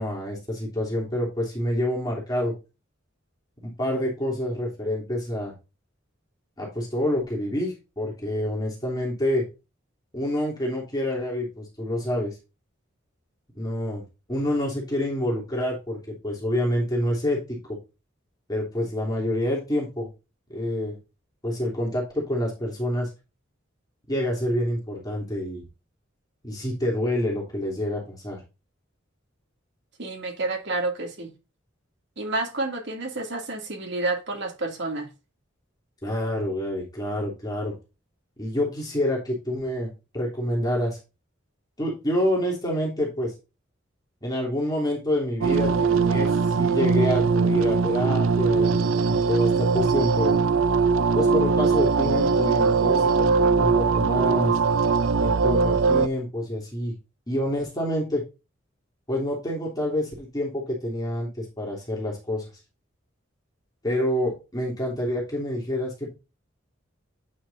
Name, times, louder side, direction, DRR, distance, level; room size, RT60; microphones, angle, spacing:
voice 1, 0.0-2.5 3.6-5.5 6.6-9.5 10.1-12.4 13.5-14.0 14.3-17.8 18.5-20.1 20.5-21.0 21.4-23.1 24.1-25.6 26.4-28.4 36.0-37.7 38.4-41.0 41.8-43.3 44.2-50.3 51.1-54.6 55.2-56.9 57.3-58.2 59.1-62.4 63.8-66.2, left 1 dB, 20° left, 3.2 m, -27 dB
voice 2, 30.0-31.3 32.2-35.1, right 2 dB, 60° right, 2.5 m, -29 dB
sound 1, 45.4-56.1, right 5 dB, 85° right, 0.5 m, -21 dB
9.2 x 7.5 x 2.6 m
head